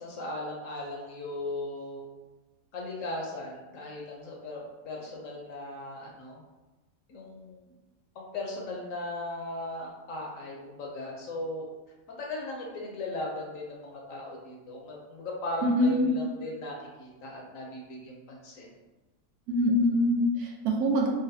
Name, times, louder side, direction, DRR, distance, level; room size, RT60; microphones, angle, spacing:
voice 1, 0.0-2.0 2.7-6.4 7.1-7.7 8.1-11.7 12.1-18.7, left 2 dB, 70° left, -1 dB, 1.0 m, -37 dB
voice 2, 15.6-16.1 19.5-21.1, equal, 85° right, 0 dB, 1.1 m, -24 dB
3.8 x 2.1 x 2.6 m, 1.1 s
omnidirectional pair, 1.5 m